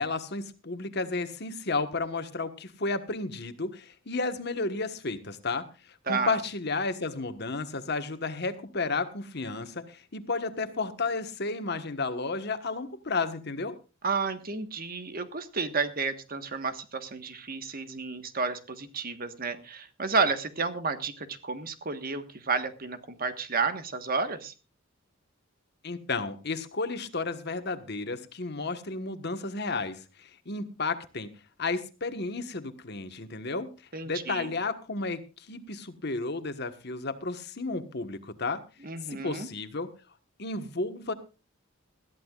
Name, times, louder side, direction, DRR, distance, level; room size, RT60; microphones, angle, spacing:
voice 1, 0.0-5.6 6.1-13.8 25.8-31.3 31.6-33.7 34.0-38.6 39.1-39.9 40.4-41.1, left 3 dB, 55° left, 9 dB, 1.4 m, -32 dB
voice 2, 6.1-6.4 14.0-24.5 33.9-34.5 38.8-39.5, right 4 dB, 45° right, 9 dB, 1.5 m, -31 dB
20.5 x 14.0 x 2.5 m, 0.31 s
head